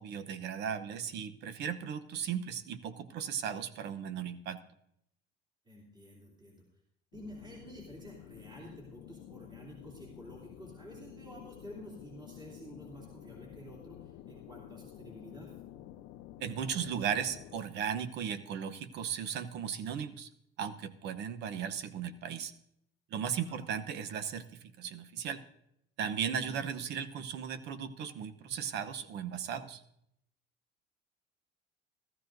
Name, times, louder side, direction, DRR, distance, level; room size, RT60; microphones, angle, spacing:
voice 1, 0.0-4.6 16.4-20.3 20.6-22.5 23.1-25.4 26.0-29.8, right 8 dB, 60° right, 12 dB, 0.9 m, -36 dB
voice 2, 5.6-6.6 7.1-15.5 23.3-23.6, equal, 20° right, -4 dB, 3.0 m, -50 dB
sound 1, 7.1-17.6, left 12 dB, 85° left, 0.7 m, -51 dB
15.5 x 14.0 x 2.6 m, 0.76 s
cardioid pair, 145°, 20 cm